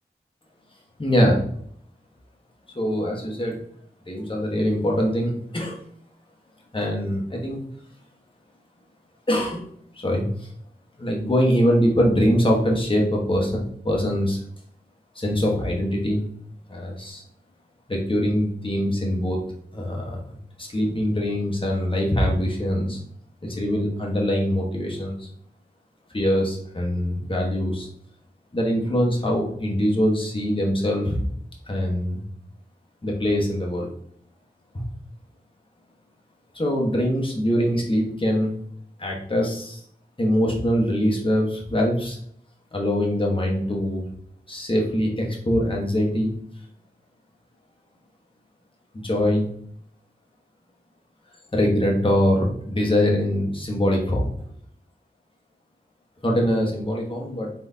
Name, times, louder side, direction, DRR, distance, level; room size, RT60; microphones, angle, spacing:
voice 1, 1.0-1.4 2.7-3.6 4.1-5.8 6.7-7.6 9.3-9.7 9.9-10.3 11.0-13.6 13.8-14.4 15.1-16.2 16.7-17.2 17.9-19.4 19.7-20.2 20.6-23.0 23.4-25.3 26.1-27.9 28.5-31.2 31.7-32.2 33.0-33.9 34.7-34.8 36.5-38.6 39.0-39.8 40.2-42.2 42.7-44.0 44.5-46.4 48.9-49.5 51.5-54.3 56.2-57.5, equal, 30° left, -1 dB, 1.3 m, -23 dB
4.4 x 4.1 x 2.8 m, 0.64 s
wide cardioid pair, 65°, 17 cm